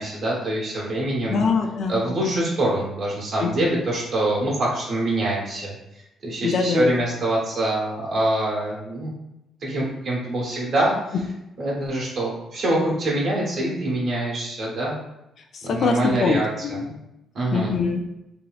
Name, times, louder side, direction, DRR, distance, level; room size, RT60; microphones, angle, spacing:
voice 1, 0.0-1.4 1.9-5.8 6.2-9.1 9.6-10.9 11.6-15.0 15.6-16.8 17.3-17.7, right 1 dB, 60° right, -4 dB, 0.9 m, -25 dB
voice 2, 1.3-2.0 3.4-3.5 6.4-6.9 15.5-17.0 17.5-18.0, left 4 dB, 65° left, 4 dB, 0.3 m, -23 dB
3.0 x 2.7 x 2.3 m, 0.89 s
cardioid pair, 90°, 0 cm